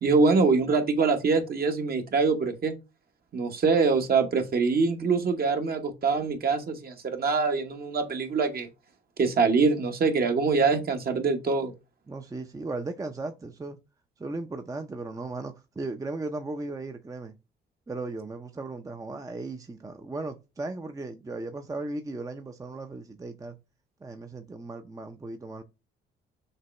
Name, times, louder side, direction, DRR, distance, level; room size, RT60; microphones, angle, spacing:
voice 1, 0.0-2.7 3.3-8.7 9.2-11.7, right 4 dB, 50° right, 1.2 m, -24 dB
voice 2, 12.1-13.8 14.2-17.3 17.9-23.6 24.0-25.6, right 2 dB, 15° right, 0.6 m, -36 dB
6.6 x 2.2 x 3.1 m
cardioid pair, 90°, 20 cm